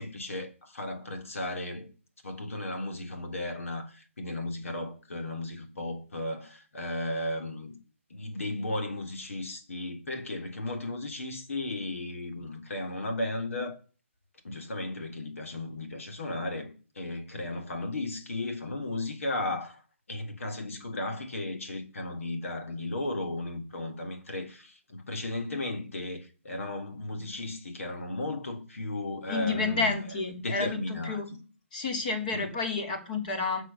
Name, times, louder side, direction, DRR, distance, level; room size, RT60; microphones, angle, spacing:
voice 1, 0.0-1.9 2.2-7.8 8.1-13.8 14.4-19.8 20.1-30.0 30.3-31.2 32.3-32.5, left 2 dB, 75° left, 3.4 m, -35 dB
voice 2, 29.3-31.3 31.7-33.6, left 4 dB, 35° left, 3.0 m, -30 dB
10.5 x 6.3 x 6.9 m
hypercardioid pair, 160°, 7 cm